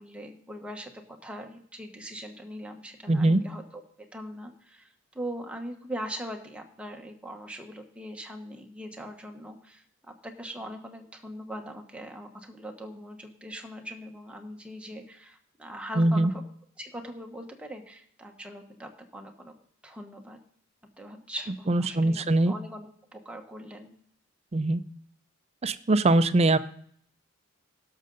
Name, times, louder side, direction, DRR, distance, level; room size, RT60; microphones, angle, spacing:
voice 1, 0.0-9.8 10.2-16.4 16.8-19.6 19.8-20.4 21.0-23.9, equal, 5° right, 3 dB, 1.1 m, -41 dB
voice 2, 3.1-3.4 16.0-16.3 21.7-22.5 24.5-24.8 25.6-26.6, right 2 dB, 30° right, 13 dB, 0.5 m, -22 dB
17.0 x 6.6 x 3.9 m, 0.64 s
head